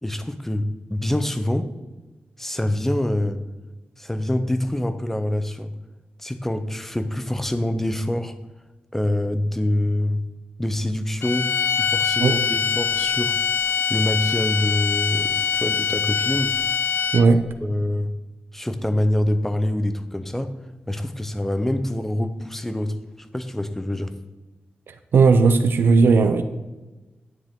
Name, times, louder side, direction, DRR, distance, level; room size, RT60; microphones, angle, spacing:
voice 1, 0.0-1.7 2.4-3.4 4.0-5.7 6.2-8.3 8.9-10.2 10.6-13.4 13.9-16.5 17.6-18.1 18.5-20.5 20.9-23.0 23.3-24.1, left 1 dB, 10° left, 10 dB, 0.6 m, -25 dB
sound 1, 11.2-17.4, left 7 dB, 90° left, 0.4 m, -23 dB
voice 2, 24.9-26.4, right 4 dB, 75° right, 8 dB, 0.6 m, -16 dB
9.7 x 9.6 x 3.7 m, 1.1 s
wide cardioid pair, 165°, 4 cm